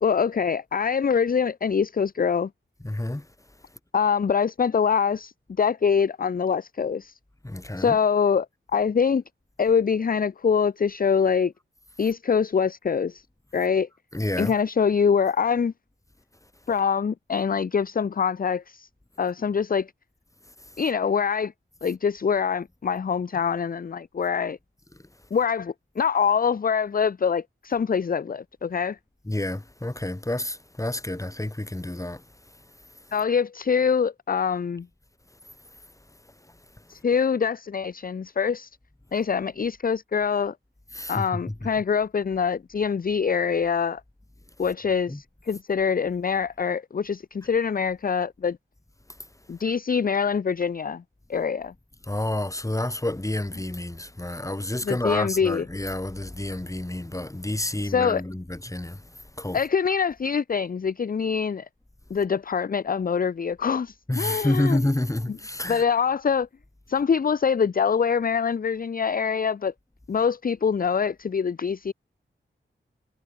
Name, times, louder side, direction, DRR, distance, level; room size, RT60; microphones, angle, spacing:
voice 1, 0.0-2.5 3.9-7.1 7.8-8.5 8.7-9.2 9.6-11.5 12.0-13.2 13.5-13.9 14.4-15.7 16.7-18.9 19.2-19.9 20.8-21.5 21.8-24.6 25.3-29.0 33.1-34.9 36.9-38.7 39.1-40.5 41.1-44.0 44.6-48.6 49.5-51.0 51.3-51.7 54.8-55.7 57.8-58.2 59.5-61.7 62.1-64.8 65.3-65.4 65.7-66.5 66.9-69.7 70.1-71.9, left 6 dB, 45° left, 0.5 m, -24 dB
voice 2, 2.8-3.2 7.4-8.0 14.1-14.5 29.3-32.2 40.9-41.2 45.1-45.2 52.1-59.0 59.4-59.6 64.1-65.8, left 1 dB, 15° left, 2.8 m, -29 dB
wide cardioid pair, 100°, 21 cm